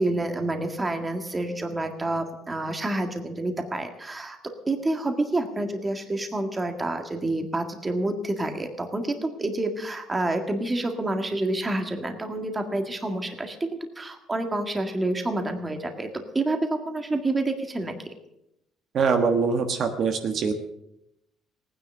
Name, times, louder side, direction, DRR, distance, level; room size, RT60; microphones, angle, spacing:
voice 1, 0.0-4.4 4.7-18.1, right 2 dB, 15° right, 5 dB, 1.8 m, -28 dB
voice 2, 18.9-20.5, right 5 dB, 45° right, 5 dB, 1.4 m, -23 dB
18.5 x 9.9 x 6.7 m, 0.83 s
cardioid pair, 135°, 0 cm